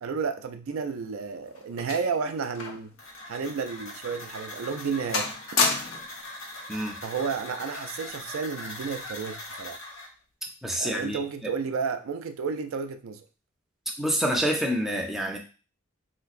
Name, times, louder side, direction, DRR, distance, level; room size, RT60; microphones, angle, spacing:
voice 1, 0.0-2.9 3.3-5.3 7.0-9.8 10.8-13.2, right 5 dB, 90° right, 0.4 m, -32 dB
sound 1, 0.8-2.9 3.2-3.4 4.0-4.2 4.6-4.9 5.1-6.2 7.2-7.5, left 4 dB, 90° left, 0.6 m, -30 dB
sound 2, 3.0-10.1, left 2 dB, 75° left, 1.1 m, -41 dB
voice 2, 10.6-11.5 14.0-15.4, equal, ahead, 0.4 m, -27 dB
3.2 x 2.9 x 2.4 m
head